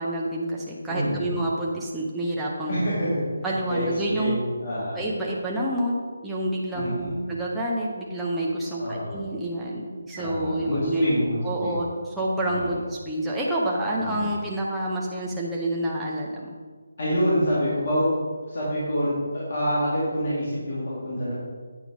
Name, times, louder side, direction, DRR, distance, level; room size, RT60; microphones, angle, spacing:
voice 1, 0.0-2.8 3.4-4.4 4.9-11.1 11.4-16.5, right 1 dB, 5° right, -6 dB, 0.6 m, -28 dB
voice 2, 0.9-1.4 2.7-3.1 3.7-5.0 6.7-7.3 8.8-9.2 10.2-11.8 12.5-12.8 14.0-14.3 17.0-18.1 18.5-21.3, equal, 40° left, -9 dB, 2.6 m, -27 dB
8.6 x 5.0 x 4.9 m, 1.5 s
hypercardioid pair, 175°, 0 cm